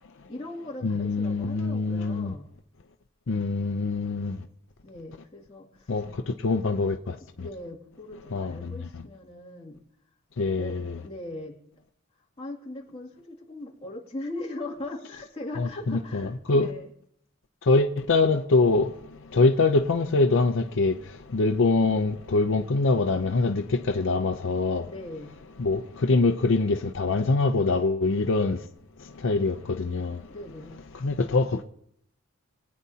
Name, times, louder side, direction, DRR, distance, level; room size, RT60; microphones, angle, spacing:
voice 1, 0.3-2.5 4.8-5.9 7.4-9.8 10.5-10.8 11.0-11.6 12.4-16.9 24.9-25.4 30.3-30.9, left 2 dB, 30° left, 2.4 m, -39 dB
voice 2, 0.8-2.3 3.3-4.3 5.9-6.1 6.4-7.1 8.3-8.7 10.4-11.0 15.6-16.7 17.7-18.9 19.3-21.0 21.3-24.8 25.6-28.6 29.2-30.2 31.0-31.6, left 3 dB, 65° left, 0.6 m, -24 dB
23.0 x 9.5 x 2.8 m
head